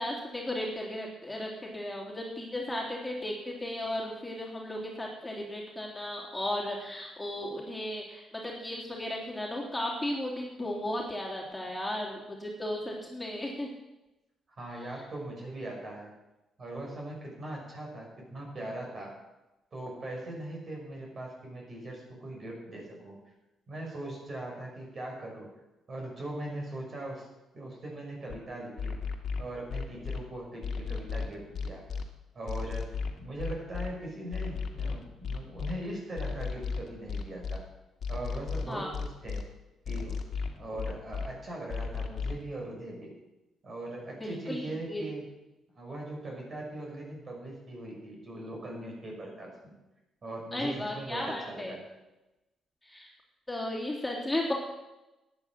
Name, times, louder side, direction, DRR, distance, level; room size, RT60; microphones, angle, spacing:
voice 1, 0.0-13.7 38.7-38.9 44.2-45.0 50.5-51.7 52.8-53.1 53.5-54.5, left 1 dB, 10° left, -2 dB, 3.4 m, -35 dB
voice 2, 14.6-16.1 16.6-19.2 19.7-23.2 23.7-25.5 25.9-27.3 27.5-29.0 29.4-31.8 32.3-32.9 33.2-37.6 38.1-39.4 39.9-40.2 40.6-43.1 43.6-45.2 45.7-49.8 50.2-51.8, right 1 dB, 40° right, -1 dB, 6.1 m, -40 dB
sound 1, 28.3-28.4 28.8-30.2 30.6-32.0 32.5-33.9 34.3-35.7 36.2-37.6 38.0-39.4 39.8-41.3 41.7-42.4, left 5 dB, 60° left, 2.0 m, -34 dB
12.5 x 9.6 x 7.6 m, 1.0 s
cardioid pair, 90°, 0 cm